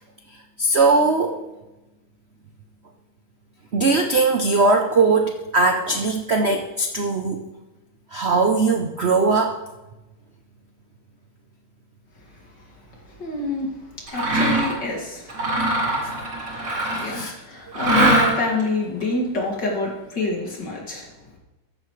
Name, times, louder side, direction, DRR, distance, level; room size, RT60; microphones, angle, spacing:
voice 1, 0.6-1.4 3.7-7.4 8.1-9.6 16.9-17.3, right 3 dB, 85° right, 3 dB, 0.5 m, -20 dB
voice 2, 13.1-15.3 15.7-16.1 16.9-21.1, left 3 dB, 55° left, -1 dB, 3.0 m, -27 dB
Mechanisms, 14.1-14.8 15.3-17.2 17.7-18.6, right 1 dB, 60° right, 4.2 m, -21 dB
14.5 x 10.5 x 3.3 m, 1.0 s
omnidirectional pair, 2.3 m